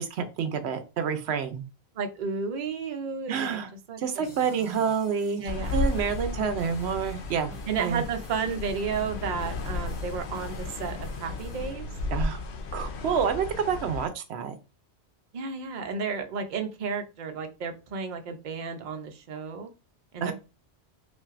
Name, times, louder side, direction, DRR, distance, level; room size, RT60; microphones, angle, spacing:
voice 1, 0.0-1.6 3.3-3.7 4.0-7.5 7.8-8.0 12.1-12.4 12.7-14.5 20.2-20.3, right 7 dB, 85° right, 9 dB, 0.9 m, -28 dB
voice 2, 2.0-3.6 3.9-4.8 5.4-5.8 7.7-11.8 15.3-19.7 20.1-20.3, right 5 dB, 50° right, 5 dB, 0.7 m, -33 dB
sound 1, 4.2-11.7, equal, ahead, 1.7 m, -51 dB
sound 2, 5.5-14.1, left 3 dB, 90° left, 0.9 m, -34 dB
5.4 x 2.6 x 2.5 m, 0.30 s
omnidirectional pair, 1.1 m